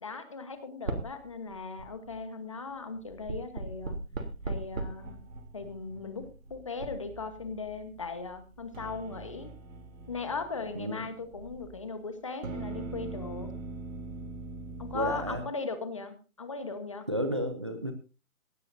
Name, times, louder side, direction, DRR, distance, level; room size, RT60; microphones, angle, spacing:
voice 1, 0.0-4.0 4.4-5.2 5.5-9.5 10.1-13.5 14.8-17.1, left 4 dB, 25° left, 9 dB, 1.3 m, -38 dB
sound 1, 0.8-1.2 1.5-2.1 3.0-11.8 12.4-15.4, right 2 dB, 65° right, 3.3 m, -40 dB
voice 2, 14.9-15.4 17.1-17.9, equal, 20° right, 8 dB, 0.8 m, -31 dB
18.5 x 16.5 x 2.7 m, 0.32 s
hypercardioid pair, 175°, 42 cm